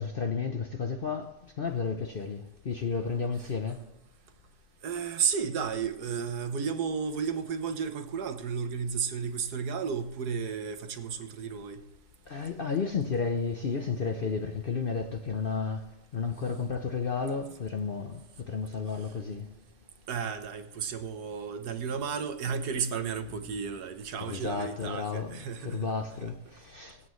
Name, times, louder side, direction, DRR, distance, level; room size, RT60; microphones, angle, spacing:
voice 1, 0.0-3.8 12.3-19.5 24.2-27.0, left 5 dB, 50° left, 0.7 m, -32 dB
voice 2, 4.8-11.8 20.1-25.9 26.2-26.4, right 6 dB, 70° right, 1.5 m, -33 dB
23.0 x 8.5 x 3.2 m
omnidirectional pair, 1.8 m